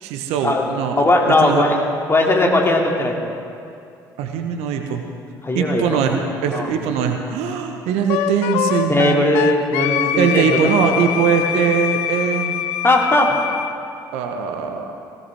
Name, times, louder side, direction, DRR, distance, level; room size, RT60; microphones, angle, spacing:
voice 1, 0.0-1.0 1.4-1.6 4.2-5.0 5.5-9.2 10.2-12.6 14.1-14.9, right 6 dB, 60° right, 4 dB, 1.2 m, -21 dB
voice 2, 1.0-3.2 5.4-6.0 6.5-6.7 8.9-10.6 12.8-13.4, left 2 dB, 20° left, 0 dB, 2.7 m, -18 dB
Wind instrument woodwind instrument, 8.1-13.7, left 10 dB, 60° left, 0.7 m, -24 dB
18.0 x 17.5 x 3.6 m, 2.5 s
figure-of-eight pair, 55°, 12 cm